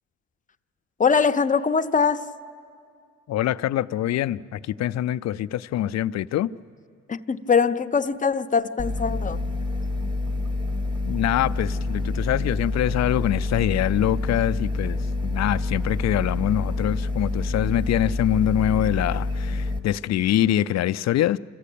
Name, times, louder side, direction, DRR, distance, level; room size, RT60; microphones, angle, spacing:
voice 1, 1.0-2.2 7.1-9.4, left 5 dB, 25° left, 0.7 m, -22 dB
voice 2, 3.3-6.5 11.0-21.4, left 12 dB, 60° left, 0.5 m, -24 dB
sound 1, 8.8-19.8, left 2 dB, 15° right, 1.5 m, -27 dB
27.5 x 15.0 x 8.5 m
cardioid pair, 90°, 30 cm